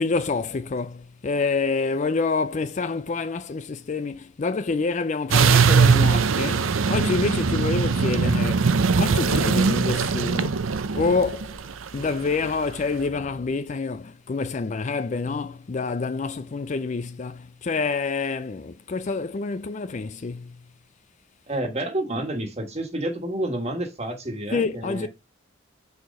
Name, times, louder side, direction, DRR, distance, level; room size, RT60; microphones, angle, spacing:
voice 1, 0.0-10.7 10.9-11.6 11.9-20.6 24.5-25.1, left 4 dB, 35° left, 0.4 m, -27 dB
sound 1, 5.3-12.7, right 5 dB, 80° right, 0.6 m, -21 dB
voice 2, 21.5-25.1, right 1 dB, 30° right, 1.6 m, -29 dB
6.4 x 4.7 x 5.3 m
head